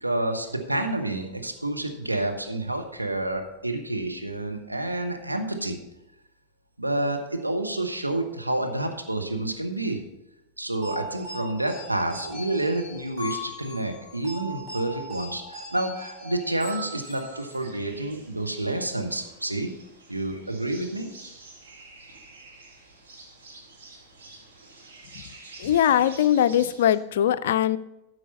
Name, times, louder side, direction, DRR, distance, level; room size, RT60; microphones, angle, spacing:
voice 1, 0.0-5.8 6.8-10.0 10.6-19.7 20.1-21.1, right 1 dB, 85° right, 3 dB, 1.1 m, -29 dB
sound 1, 10.8-17.7, equal, 40° right, 3.9 m, -39 dB
sound 2, 16.5-26.9, right 3 dB, 60° right, 1.9 m, -49 dB
voice 2, 25.6-27.8, left 10 dB, 60° left, 15 dB, 0.4 m, -21 dB
13.0 x 4.8 x 5.5 m, 0.92 s
figure-of-eight pair, 90°, 0 cm